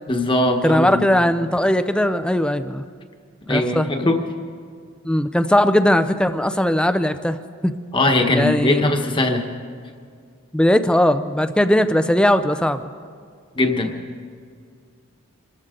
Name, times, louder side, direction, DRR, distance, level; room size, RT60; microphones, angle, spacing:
voice 1, 0.1-1.0 3.5-4.2 7.9-9.5 13.5-14.0, left 2 dB, 25° left, 4 dB, 1.2 m, -20 dB
voice 2, 0.6-2.8 3.5-3.9 5.0-7.4 7.6-7.7 8.3-8.9 10.5-12.9, left 1 dB, 5° left, 11 dB, 0.5 m, -19 dB
26.0 x 14.5 x 3.8 m, 2.1 s
head